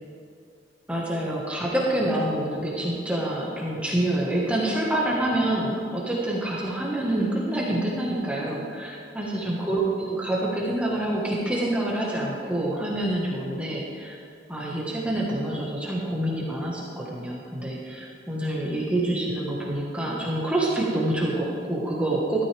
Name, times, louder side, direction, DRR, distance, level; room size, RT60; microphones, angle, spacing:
voice 1, 0.9-14.2 14.5-22.4, right 1 dB, 5° right, -4 dB, 1.4 m, -27 dB
13.0 x 12.5 x 3.4 m, 2.3 s
head